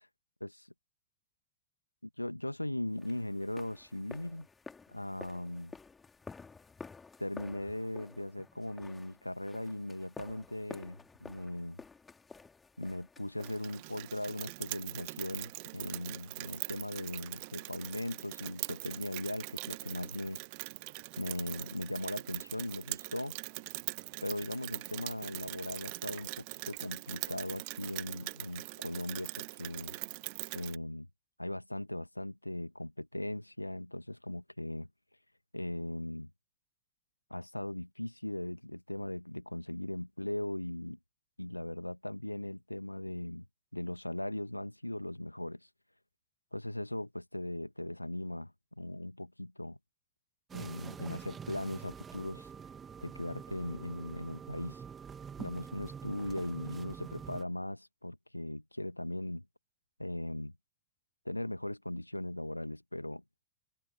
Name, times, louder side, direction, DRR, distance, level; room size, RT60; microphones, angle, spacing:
voice 1, 2.2-4.5 4.9-5.7 7.2-11.8 12.8-20.4 21.2-23.4 24.2-29.3 29.6-30.0 30.5-31.1 31.4-34.9 35.5-36.3 37.3-41.0 41.4-43.5 43.7-45.7 46.5-48.5 48.8-49.8 50.5-52.5 53.0-54.8 55.4-59.4 60.0-60.5 61.2-63.2, left 1 dB, 85° left, 1.7 m, -39 dB
sound 1, 3.0-14.1, left 4 dB, 15° left, 3.0 m, -52 dB
Rain, 13.4-30.8, right 32 dB, 45° right, 1.1 m, -42 dB
sound 2, 50.5-57.4, right 7 dB, 20° right, 1.8 m, -46 dB
figure-of-eight pair, 90°, 0 cm